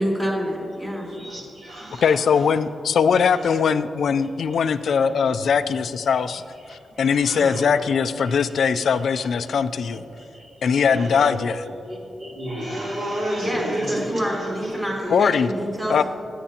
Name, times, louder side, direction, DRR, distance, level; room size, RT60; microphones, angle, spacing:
voice 1, 0.0-1.1 13.4-16.0, equal, 15° right, -4 dB, 2.9 m, -26 dB
voice 2, 1.1-2.4 3.4-3.6 4.5-4.7 5.0-5.1 5.4-5.8 6.3-6.4 6.6-7.7 8.2-8.3 9.5-9.6 9.9-11.3 11.8-15.2, equal, 50° right, -4 dB, 3.1 m, -33 dB
voice 3, 2.0-6.4 6.7-10.0 10.6-11.6 15.1-15.5 15.9-16.0, left 6 dB, 65° left, 12 dB, 0.4 m, -21 dB
22.5 x 9.2 x 2.9 m, 2.6 s
wide cardioid pair, 155°, 0 cm